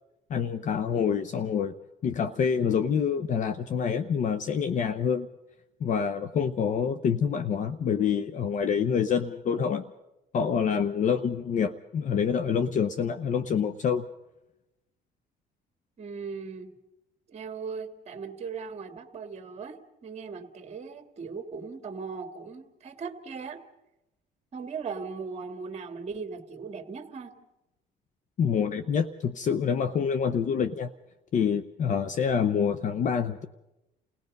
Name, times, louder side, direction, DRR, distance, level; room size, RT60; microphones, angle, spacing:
voice 1, 0.3-1.7 2.0-5.3 5.8-9.8 10.3-14.1 28.4-30.9 31.3-33.4, left 7 dB, 50° left, 11 dB, 0.7 m, -26 dB
voice 2, 16.0-16.8 17.3-23.6 24.5-27.4, right 5 dB, 40° right, 7 dB, 2.0 m, -38 dB
29.5 x 17.5 x 5.3 m, 0.94 s
cardioid pair, 110°, 17 cm